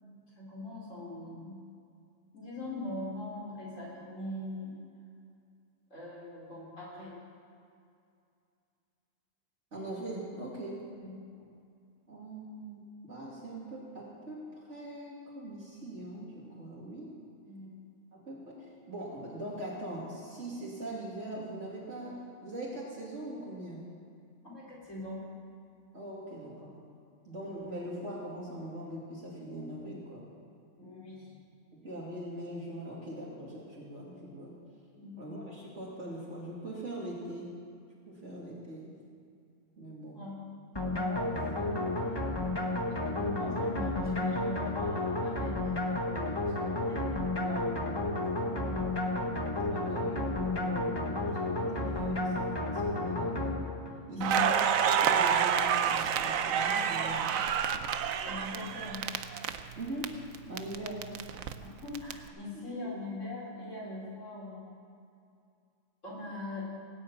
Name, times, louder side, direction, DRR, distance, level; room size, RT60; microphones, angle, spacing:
voice 1, 0.4-1.6 2.3-4.8 5.9-7.2 11.0-11.5 17.4-17.7 24.4-25.3 30.7-31.4 35.0-35.2 40.1-40.4 40.9-42.2 42.9-48.0 48.3-48.7 54.1-54.4 58.2-59.1 61.8-64.8 66.0-66.6, left 2 dB, 70° left, -5 dB, 4.8 m, -41 dB
voice 2, 9.7-10.9 12.1-17.1 18.1-23.9 25.9-26.8 27.2-30.3 31.7-34.6 35.2-37.6 38.1-39.0 39.8-40.2 48.6-49.0 49.2-53.6 54.1-57.4 59.8-60.1 60.5-61.1 62.5-62.7, right 1 dB, 60° right, -6 dB, 3.1 m, -41 dB
sound 1, 40.8-54.1, left 2 dB, 20° left, 1.3 m, -32 dB
Crackle, 54.2-60.1 60.3-62.1, right 8 dB, 90° right, 1.2 m, -28 dB
18.5 x 8.6 x 8.8 m, 2.4 s
omnidirectional pair, 1.4 m